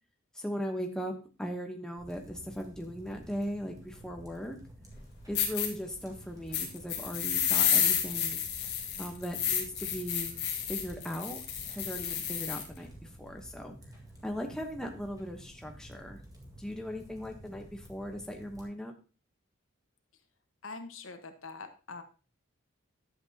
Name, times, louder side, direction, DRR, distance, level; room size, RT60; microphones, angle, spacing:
voice 1, 0.3-4.6 5.3-8.4 9.0-10.4 10.7-13.8 14.2-16.2 16.6-18.9, equal, 5° left, 2 dB, 0.9 m, -38 dB
sound 1, 2.0-18.7, equal, 15° right, 1.8 m, -52 dB
sound 2, 4.9-5.0 5.3-5.7 6.5-12.7, left 8 dB, 50° left, 1.8 m, -30 dB
voice 2, 20.6-22.0, left 3 dB, 70° left, 6 dB, 1.2 m, -44 dB
11.0 x 7.9 x 2.8 m, 0.34 s
head